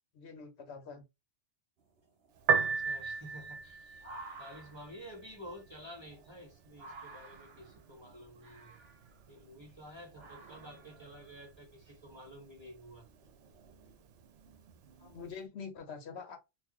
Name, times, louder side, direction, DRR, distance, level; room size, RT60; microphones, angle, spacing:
voice 1, 0.1-1.0 15.0-16.4, left 5 dB, 70° left, 1.0 m, -45 dB
sound 1, 1.8-15.2, right 3 dB, 60° right, 1.1 m, -55 dB
Piano, 2.3-15.4, right 6 dB, 90° right, 0.9 m, -40 dB
voice 2, 2.6-8.8 9.3-13.1, equal, 25° right, 1.5 m, -51 dB
3.8 x 2.5 x 3.0 m
omnidirectional pair, 1.2 m